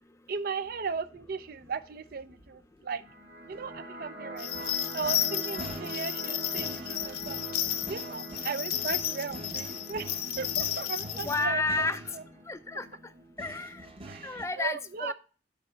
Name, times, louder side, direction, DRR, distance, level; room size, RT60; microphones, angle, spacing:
voice 1, 0.3-3.0 3.4-4.6 4.9-7.4 7.9-11.9 12.1-12.2 14.0-15.1, right 5 dB, 55° right, 0.5 m, -37 dB
sound 1, 0.6-2.5 3.5-12.4 13.4-14.5, right 1 dB, 35° right, 1.0 m, -47 dB
sound 2, 2.9-13.9, right 1 dB, 75° right, 3.2 m, -44 dB
sound 3, 4.4-11.4, left 11 dB, 60° left, 0.7 m, -33 dB
voice 2, 11.1-12.0 12.5-12.9 13.4-13.9 14.2-15.1, left 3 dB, 15° left, 0.5 m, -31 dB
10.5 x 3.9 x 4.3 m
head